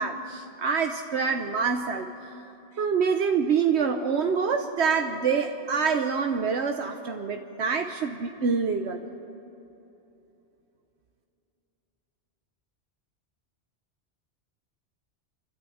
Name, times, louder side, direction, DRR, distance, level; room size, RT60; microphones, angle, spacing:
voice 1, 0.0-2.1 2.8-9.0, right 5 dB, 75° right, 5 dB, 1.2 m, -26 dB
29.0 x 12.0 x 8.5 m, 2.9 s
omnidirectional pair, 1.1 m